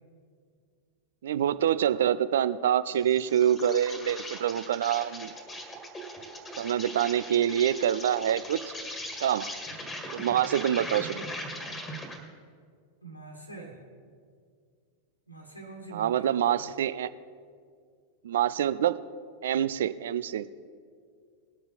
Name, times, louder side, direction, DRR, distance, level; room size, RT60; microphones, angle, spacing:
voice 1, 1.2-5.3 6.6-8.6 9.2-9.5 10.1-11.2 15.9-17.1 18.2-19.0 19.4-20.5, right 10 dB, 60° right, 15 dB, 0.4 m, -26 dB
Insect, 2.9-12.3, left 1 dB, 15° left, 1.8 m, -40 dB
voice 2, 13.0-13.8 15.3-16.7, right 3 dB, 90° left, 2 dB, 1.6 m, -45 dB
19.5 x 6.8 x 4.1 m, 2.1 s
figure-of-eight pair, 90°, 0 cm